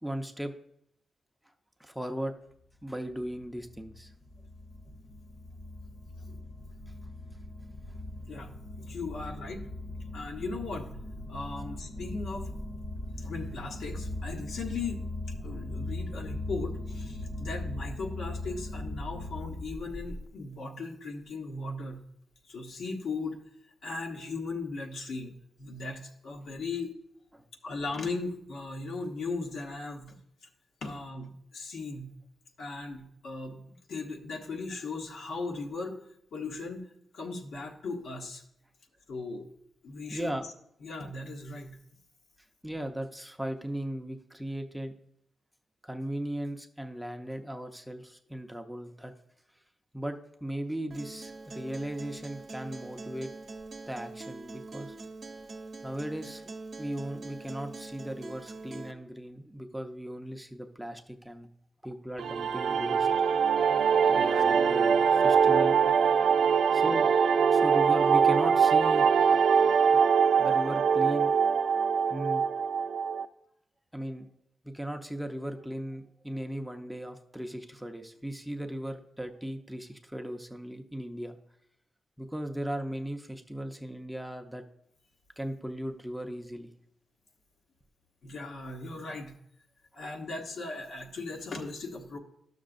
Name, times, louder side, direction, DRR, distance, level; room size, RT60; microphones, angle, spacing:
voice 1, 0.0-0.5 1.8-2.3 2.8-4.1 27.3-27.4 40.1-40.5 42.6-44.9 45.8-49.1 49.9-53.3 53.9-55.0 55.8-56.4 56.8-61.5 61.8-63.1 64.0-65.9 66.7-67.1 67.5-69.4 70.4-71.3 72.1-72.4 73.9-74.3 74.6-81.3 82.2-84.6 85.4-86.7, right 1 dB, ahead, 4 dB, 0.6 m, -37 dB
sound 1, 2.7-20.3, left 1 dB, 30° left, 0.8 m, -39 dB
voice 2, 8.8-9.7 10.1-10.9 11.3-12.5 13.2-15.1 15.4-22.0 22.5-23.4 23.8-27.0 27.6-30.1 30.8-32.1 32.6-33.6 33.9-36.0 36.3-36.9 37.1-38.4 39.1-39.5 39.8-40.5 40.8-41.8 88.2-89.3 89.9-92.2, left 3 dB, 75° left, 1 dB, 1.0 m, -37 dB
Acoustic guitar, 50.9-58.9, right 3 dB, 45° right, 0.8 m, -44 dB
sound 2, 62.2-73.3, right 6 dB, 75° right, 0.3 m, -23 dB
12.0 x 6.3 x 2.5 m, 0.73 s
cardioid pair, 90°, 0 cm